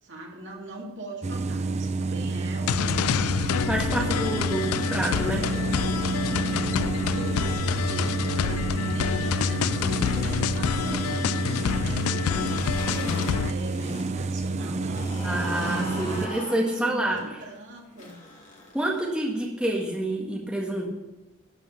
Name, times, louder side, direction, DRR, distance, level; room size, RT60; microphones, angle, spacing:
voice 1, 0.0-3.6 4.1-5.3 5.8-6.0 6.3-15.5 15.9-18.2, right 1 dB, 60° right, -1 dB, 2.7 m, -42 dB
sound 1, 1.2-16.3, right 3 dB, 30° right, 0.5 m, -29 dB
sound 2, 2.7-13.5, left 9 dB, 75° left, 0.3 m, -28 dB
voice 2, 3.7-5.4 15.2-17.2 18.7-20.9, right 1 dB, 5° right, -2 dB, 1.6 m, -28 dB
sound 3, 12.3-14.1 14.4-19.2, left 1 dB, 35° left, 2.7 m, -39 dB
12.5 x 5.4 x 8.2 m, 1.0 s
head